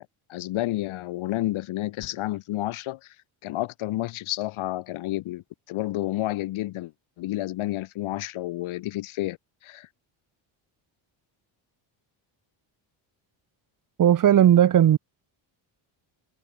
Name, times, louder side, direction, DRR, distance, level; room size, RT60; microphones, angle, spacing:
voice 1, 0.0-3.0 3.4-6.9 7.2-9.4 9.6-9.9, left 16 dB, 85° left, 3.7 m, -30 dB
voice 2, 14.0-15.0, right 10 dB, 40° right, 1.7 m, -16 dB
cardioid pair, 170°, 47 cm